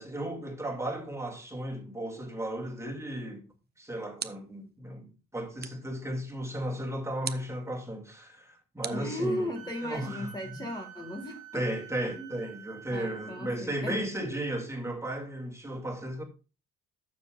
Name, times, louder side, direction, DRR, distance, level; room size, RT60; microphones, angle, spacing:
voice 1, 0.0-9.5 9.8-10.7 11.5-16.2, right 1 dB, 10° right, 2.3 m, -35 dB
sound 1, 3.5-4.7 5.6-6.0 7.2-7.6 8.8-9.7, right 7 dB, 30° right, 0.7 m, -41 dB
voice 2, 8.9-11.6 12.2-12.5 12.9-14.0, left 1 dB, 15° left, 1.8 m, -36 dB
Wind instrument woodwind instrument, 9.6-13.6, right 8 dB, 70° right, 1.6 m, -48 dB
12.5 x 7.1 x 2.4 m
cardioid pair, 90°, 30 cm